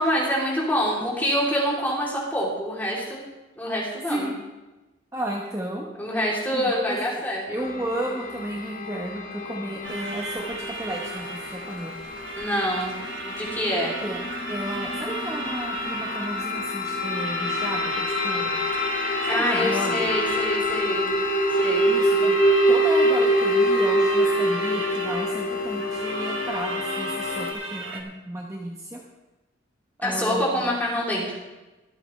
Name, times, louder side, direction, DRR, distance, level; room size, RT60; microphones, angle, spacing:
voice 1, 0.0-3.2 3.6-4.3 6.0-7.6 12.4-12.9 13.2-14.0 19.3-21.1 21.6-21.9 30.0-31.4, equal, 10° left, -4 dB, 3.2 m, -26 dB
voice 2, 4.1-4.4 5.1-5.9 6.5-7.0 7.5-11.9 14.0-14.2 14.5-18.6 19.3-20.0 21.9-22.4 22.7-29.0 30.0-30.6, right 1 dB, 15° right, -2 dB, 1.1 m, -33 dB
sound 1, 7.6-27.5, equal, 45° left, 1.5 m, -26 dB
sound 2, 9.8-28.0, right 4 dB, 85° right, 1.6 m, -36 dB
24.0 x 8.6 x 3.3 m, 1.1 s
head